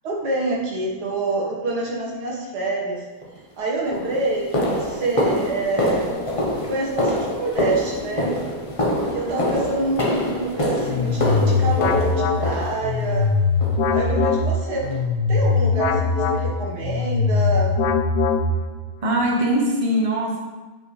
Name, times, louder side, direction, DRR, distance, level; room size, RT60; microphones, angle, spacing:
voice 1, 0.0-3.0 3.6-6.2 6.7-8.4 9.1-13.3 13.9-15.0 15.3-17.8, right 2 dB, 55° right, -3 dB, 1.8 m, -26 dB
sound 1, 3.2-3.4 3.9-13.1 13.6-14.0 14.2-14.4 14.8-15.0 15.4-15.5 16.0-16.1, left 1 dB, 60° left, 0.3 m, -25 dB
sound 2, 10.8-18.9, left 4 dB, 85° left, 0.8 m, -21 dB
voice 2, 19.0-20.4, right 1 dB, 30° right, -1 dB, 0.6 m, -22 dB
9.0 x 5.1 x 3.2 m, 1.2 s
omnidirectional pair, 2.2 m